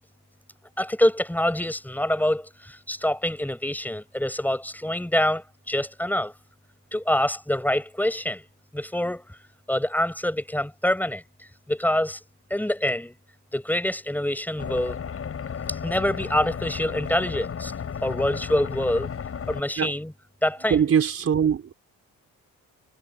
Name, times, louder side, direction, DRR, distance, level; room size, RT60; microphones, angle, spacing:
voice 1, 0.8-6.3 6.9-8.4 8.7-9.3 9.7-11.2 11.7-12.2 12.5-13.1 13.5-15.0 15.7-17.7 18.0-19.1 19.5-20.1 20.4-20.8, left 1 dB, 5° left, 5.9 m, -25 dB
sound 1, 14.6-19.6, left 7 dB, 50° left, 6.7 m, -33 dB
voice 2, 20.7-21.7, right 8 dB, 50° right, 5.1 m, -22 dB
cardioid pair, 90°, 30 cm